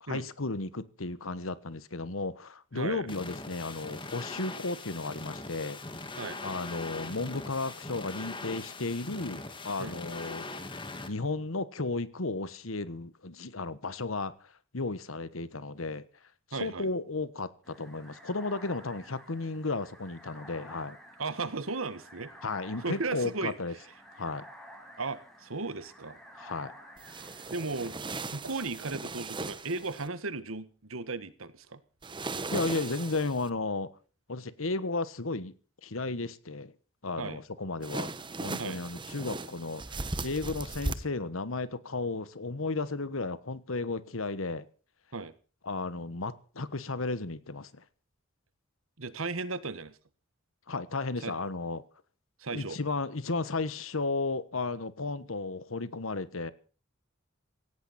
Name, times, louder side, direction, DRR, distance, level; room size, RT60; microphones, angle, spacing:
voice 1, 0.0-5.8 6.4-10.5 11.1-14.3 14.7-16.0 16.5-21.0 22.4-23.7 24.1-24.4 26.4-26.7 32.5-33.9 34.3-35.5 35.8-36.7 37.0-38.1 38.4-44.7 45.6-47.8 50.7-51.8 52.5-56.5, left 3 dB, 80° left, 1.3 m, -34 dB
voice 2, 2.7-3.1 6.2-6.4 9.8-9.9 16.5-16.9 21.2-22.3 22.8-23.5 25.0-26.2 27.5-28.0 28.3-31.8 37.2-37.4 38.6-38.8 45.1-45.3 49.0-50.0 51.2-51.4 52.4-52.8, right 3 dB, 85° right, 1.5 m, -35 dB
sound 1, 3.1-11.1, left 2 dB, 25° left, 2.1 m, -41 dB
sound 2, 17.6-28.0, equal, ahead, 5.4 m, -52 dB
sound 3, 27.0-30.1 32.0-33.5 37.8-40.9, right 3 dB, 25° right, 1.0 m, -38 dB
17.5 x 16.5 x 4.3 m
head